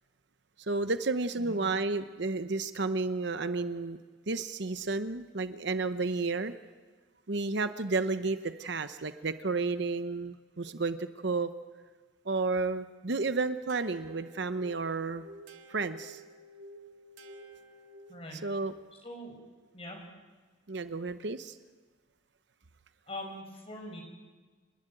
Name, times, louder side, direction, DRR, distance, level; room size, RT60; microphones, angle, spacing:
voice 1, 0.6-4.0 4.3-6.5 7.3-11.5 12.3-15.2 15.7-16.2 18.4-18.7 20.7-21.6, right 3 dB, 55° right, 11 dB, 0.8 m, -32 dB
sound 1, 13.7-18.5, right 1 dB, 80° right, 2.5 m, -51 dB
voice 2, 19.0-19.4 19.7-20.0 23.1-24.0, left 1 dB, 30° left, 2 dB, 5.2 m, -42 dB
29.0 x 11.5 x 9.2 m, 1.4 s
head